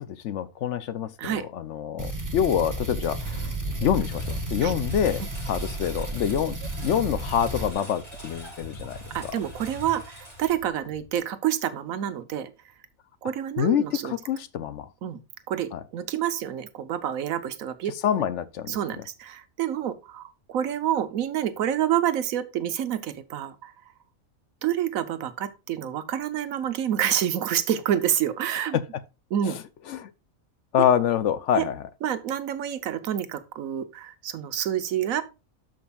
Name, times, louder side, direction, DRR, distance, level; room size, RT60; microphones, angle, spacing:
voice 1, 0.0-3.4 3.8-4.3 4.5-9.0 13.6-14.9 15.7-15.8 18.0-18.8 29.5-29.6 29.9-30.1 30.7-31.7, left 9 dB, 65° left, 0.9 m, -26 dB
sound 1, 2.0-7.7, right 1 dB, 15° right, 1.2 m, -33 dB
Engine, 2.8-11.2, equal, 30° left, 5.0 m, -41 dB
voice 2, 9.1-12.5 13.2-14.1 15.0-15.2 15.5-18.3 18.7-23.7 24.6-28.8 29.3-29.6 31.5-31.7 32.0-35.2, right 10 dB, 85° right, 1.2 m, -28 dB
12.5 x 5.2 x 2.3 m
omnidirectional pair, 1.4 m